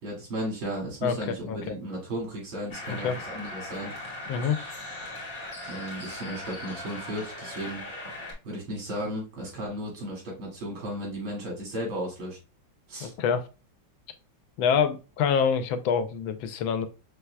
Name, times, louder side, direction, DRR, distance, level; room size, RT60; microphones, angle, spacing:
voice 1, 0.0-3.9 5.7-7.9 8.4-12.4 12.9-13.1, equal, 90° right, 3.1 m, -35 dB
voice 2, 1.0-1.6 2.9-3.2 4.3-4.6 13.0-13.5 14.6-16.9, left 6 dB, 90° left, 1.4 m, -26 dB
sound 1, 2.7-8.3, left 1 dB, 35° left, 2.1 m, -39 dB
5.8 x 3.4 x 2.2 m
omnidirectional pair, 2.1 m